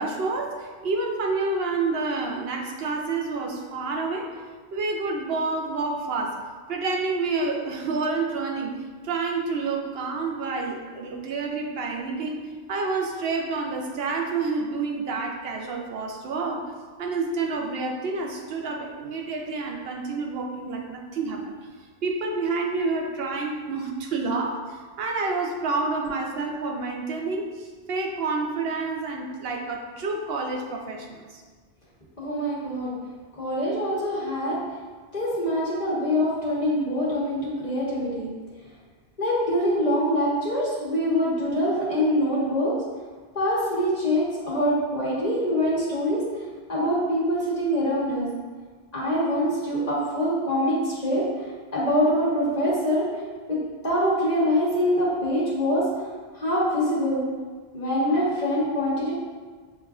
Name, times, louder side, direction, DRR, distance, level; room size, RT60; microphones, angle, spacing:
voice 1, 0.0-4.3 4.7-6.4 6.7-12.4 12.7-16.6 17.0-21.5 22.0-31.4, right 3 dB, 70° right, 1 dB, 0.8 m, -28 dB
voice 2, 32.2-32.9 33.3-34.6 35.1-38.3 39.2-42.7 43.3-46.4 46.7-48.3 48.9-53.1 53.5-53.6 53.8-55.8 56.3-57.2 57.7-59.1, equal, 45° left, -7 dB, 1.0 m, -24 dB
6.6 x 2.5 x 2.3 m, 1.5 s
omnidirectional pair, 1.1 m